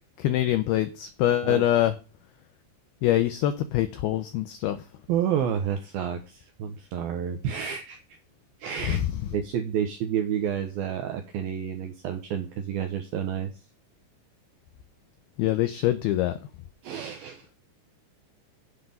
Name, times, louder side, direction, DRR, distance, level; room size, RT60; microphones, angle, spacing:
voice 1, 0.2-1.9 3.0-4.8 8.9-9.1 15.4-16.3, left 13 dB, 85° left, 2.2 m, -24 dB
voice 2, 5.1-8.0 8.6-9.0 9.3-13.5 16.8-17.5, right 9 dB, 80° right, 2.2 m, -30 dB
8.3 x 5.4 x 7.7 m
omnidirectional pair, 5.4 m